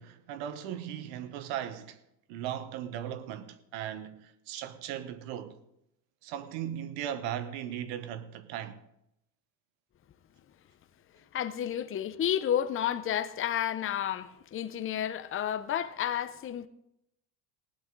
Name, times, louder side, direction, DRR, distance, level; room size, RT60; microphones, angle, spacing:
voice 1, 0.0-2.0 2.3-5.6 6.2-8.8, right 10 dB, 85° right, 1.2 m, -38 dB
voice 2, 11.3-16.7, left 10 dB, 25° left, 0.6 m, -31 dB
16.0 x 11.5 x 3.8 m
supercardioid pair, 110°, 50 cm